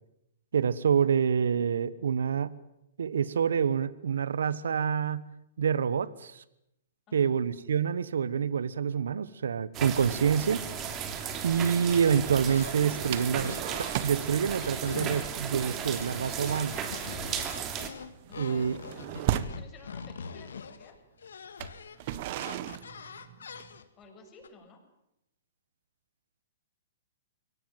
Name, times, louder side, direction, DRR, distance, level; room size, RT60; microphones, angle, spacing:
voice 1, 0.5-2.5 3.0-5.3 5.6-6.4 7.1-10.6 11.4-16.8 18.4-18.8, right 7 dB, 80° right, 19 dB, 1.2 m, -27 dB
sound 1, 9.7-17.9, right 8 dB, 30° right, 3.2 m, -35 dB
sound 2, 11.9-15.3 15.5-24.0 24.4-24.5, left 6 dB, 80° left, 2.0 m, -43 dB
sound 3, 13.1-14.3 14.5-14.8 15.1-15.4 15.8-16.0 16.3-16.6 17.0-19.7 20.5-20.6 21.4-23.8, right 12 dB, 50° right, 1.4 m, -35 dB
voice 2, 17.7-18.7 18.9-21.0 24.0-24.8, left 4 dB, 30° left, 3 dB, 7.4 m, -54 dB
23.0 x 18.0 x 9.1 m, 0.84 s
hypercardioid pair, 125°, 0 cm